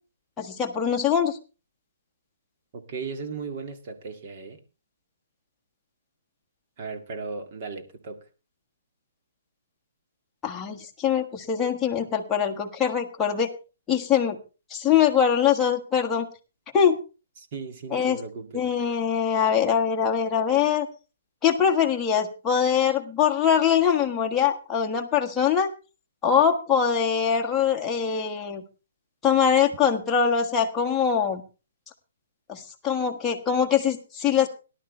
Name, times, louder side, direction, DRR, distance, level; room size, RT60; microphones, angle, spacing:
voice 1, 0.4-1.4 10.4-13.5 13.9-14.4 14.7-16.3 16.7-17.0 17.9-18.2 18.5-20.9 21.4-25.7 26.2-28.6 29.2-31.4 32.5-34.5, left 8 dB, 10° left, 1.4 m, -23 dB
voice 2, 2.7-4.6 6.8-8.2 17.4-18.6, right 4 dB, 35° right, 2.1 m, -36 dB
18.5 x 11.5 x 3.3 m
hypercardioid pair, 175°, 0 cm